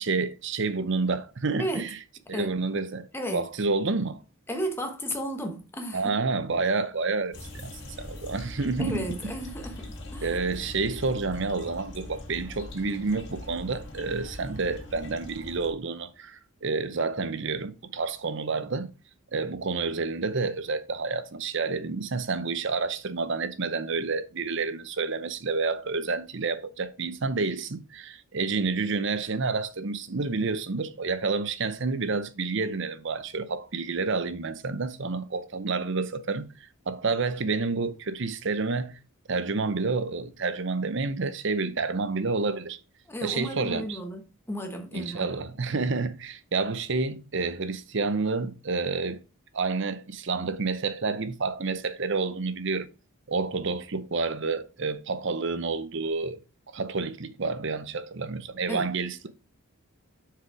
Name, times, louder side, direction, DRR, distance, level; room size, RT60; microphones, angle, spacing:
voice 1, 0.0-2.0 2.3-4.2 5.9-9.1 10.2-18.9 19.3-39.0 39.3-42.8 43.2-44.0 44.9-49.2 49.5-52.9 53.3-56.4 56.7-59.3, right 4 dB, 55° right, 0.7 m, -29 dB
voice 2, 4.5-6.2 8.8-10.4 43.1-44.2 44.5-45.3 58.7-58.9, equal, 10° left, 1.1 m, -33 dB
sound 1, 7.3-15.7, left 1 dB, 50° left, 2.0 m, -41 dB
6.4 x 4.9 x 4.7 m
head